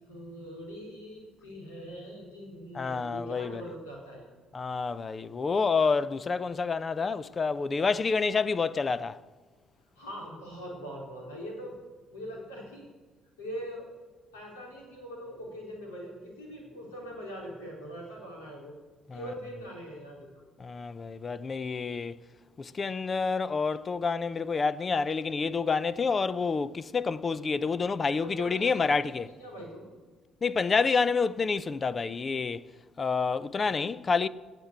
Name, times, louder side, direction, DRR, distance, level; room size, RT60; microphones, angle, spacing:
voice 1, 0.0-4.3 10.0-11.7 12.1-12.8 13.4-13.9 14.3-18.7 19.1-20.3 28.2-29.9, equal, 85° left, 3.8 m, -42 dB
voice 2, 2.8-3.6 4.5-9.2 19.1-19.2 20.6-22.2 22.6-29.3 30.4-32.6 33.0-34.3, left 4 dB, 40° left, 0.5 m, -28 dB
17.5 x 6.1 x 8.3 m
hypercardioid pair, 50°, 0 cm